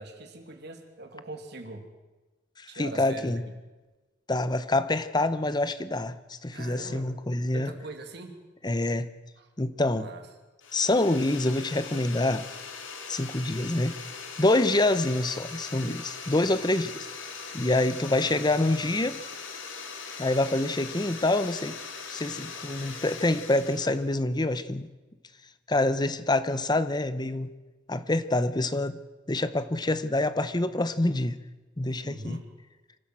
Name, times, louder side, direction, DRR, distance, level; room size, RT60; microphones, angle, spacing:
voice 1, 0.0-1.8 2.7-3.4 6.5-7.1 7.5-8.4 9.4-9.5 9.9-10.2 32.0-32.5, right 2 dB, 60° right, 2.8 m, -41 dB
voice 2, 2.6-3.4 4.3-6.2 6.4-7.7 8.6-9.1 9.6-10.1 10.7-12.5 13.1-13.9 14.4-17.1 17.5-19.2 20.2-21.8 22.1-24.9 25.7-27.5 27.9-29.0 29.3-31.4 31.8-32.4, left 2 dB, 20° left, 0.8 m, -26 dB
sound 1, 10.6-24.1, left 5 dB, 85° left, 2.8 m, -40 dB
26.0 x 13.0 x 7.7 m
head